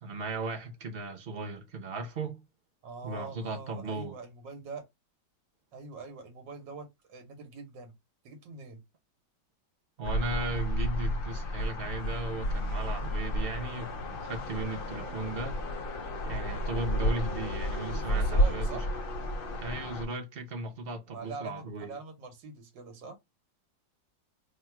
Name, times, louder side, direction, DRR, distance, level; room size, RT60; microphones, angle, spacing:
voice 1, 0.0-2.4 3.0-4.1 10.0-15.6 16.2-18.7 19.6-22.0, right 2 dB, 45° right, 0.9 m, -36 dB
voice 2, 2.8-4.9 5.7-7.9 8.2-8.8 17.7-18.9 21.1-23.2, right 4 dB, 85° right, 1.7 m, -44 dB
sound 1, 10.0-20.1, equal, 80° left, 0.4 m, -31 dB
3.5 x 2.2 x 4.5 m
omnidirectional pair, 1.9 m